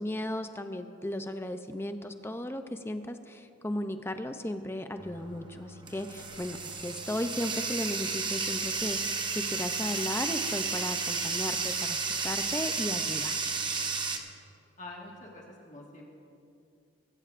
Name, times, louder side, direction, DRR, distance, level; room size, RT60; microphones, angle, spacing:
voice 1, 0.0-13.4, left 1 dB, 10° left, 8 dB, 0.5 m, -35 dB
Bathtub (filling or washing), 5.0-14.2, right 4 dB, 20° right, 0.8 m, -32 dB
voice 2, 14.8-16.1, left 2 dB, 35° left, -2 dB, 1.6 m, -46 dB
21.0 x 16.5 x 2.5 m, 2.5 s
head